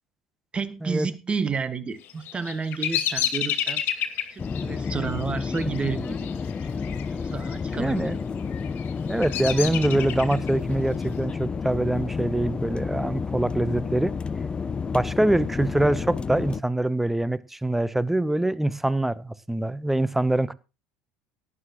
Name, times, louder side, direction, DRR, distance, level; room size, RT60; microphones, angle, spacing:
voice 1, 0.5-3.8 4.3-6.4 6.7-6.8 7.1-8.2, right 5 dB, 25° right, 1.7 m, -31 dB
Bird vocalization bird call bird song, 2.0-7.1 7.3-7.9 8.5-10.5, left 11 dB, 50° left, 2.1 m, -30 dB
sound 1, 4.4-16.6, left 5 dB, 20° left, 0.5 m, -30 dB
voice 2, 7.7-8.1 9.1-14.1 14.9-20.5, right 1 dB, 5° right, 0.8 m, -24 dB
18.0 x 9.8 x 3.0 m
figure-of-eight pair, 65°, 5 cm